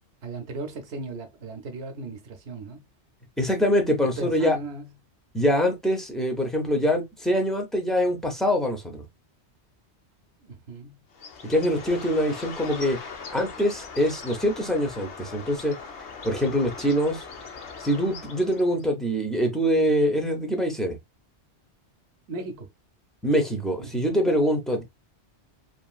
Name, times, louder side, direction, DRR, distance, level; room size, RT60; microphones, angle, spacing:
voice 1, 0.2-2.8 4.0-4.9 10.4-11.0 22.3-22.7 23.8-24.0, right 3 dB, 70° right, 0.8 m, -36 dB
voice 2, 3.4-4.6 5.3-9.0 11.4-13.0 13.3-15.8 16.2-17.2 17.8-21.0 23.2-24.8, equal, ahead, 0.3 m, -24 dB
Bird, 11.1-18.8, left 5 dB, 75° left, 0.9 m, -40 dB
2.9 x 2.5 x 2.3 m
omnidirectional pair, 1.2 m